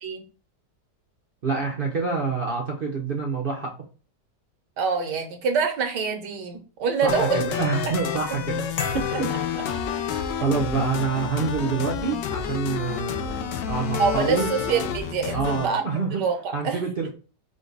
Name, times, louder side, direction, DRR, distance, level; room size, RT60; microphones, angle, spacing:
voice 1, 1.4-3.7 7.0-8.7 8.9-9.3 9.6-10.0 10.3-14.5 15.3-16.2 16.5-17.1, right 4 dB, 50° right, -1 dB, 0.6 m, -27 dB
voice 2, 4.8-7.5 14.0-15.8 16.1-16.4 16.6-16.8, right 5 dB, 75° right, 4 dB, 1.5 m, -25 dB
sound 1, 7.1-15.7, left 7 dB, 80° left, 1.3 m, -29 dB
sound 2, 8.8-10.7, left 4 dB, 65° left, 1.0 m, -36 dB
5.1 x 2.3 x 3.8 m, 0.36 s
omnidirectional pair, 1.9 m